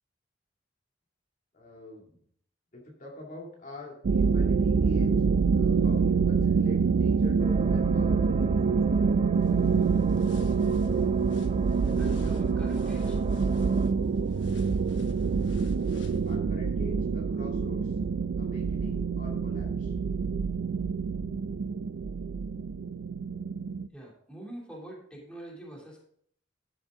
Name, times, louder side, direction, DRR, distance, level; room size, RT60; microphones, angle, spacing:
voice 1, 1.5-2.2 2.7-5.2 5.5-8.3 15.9-17.9 18.4-20.0, left 1 dB, 45° left, -1 dB, 2.3 m, -45 dB
sound 1, 4.0-23.9, right 5 dB, 75° right, 0.4 m, -26 dB
sound 2, 7.4-13.9, right 3 dB, 30° right, 0.6 m, -39 dB
sound 3, 9.4-16.4, left 2 dB, 70° left, 1.1 m, -51 dB
voice 2, 12.0-13.2 23.9-26.0, right 1 dB, 5° left, -3 dB, 2.9 m, -45 dB
12.0 x 7.6 x 3.7 m, 0.63 s
head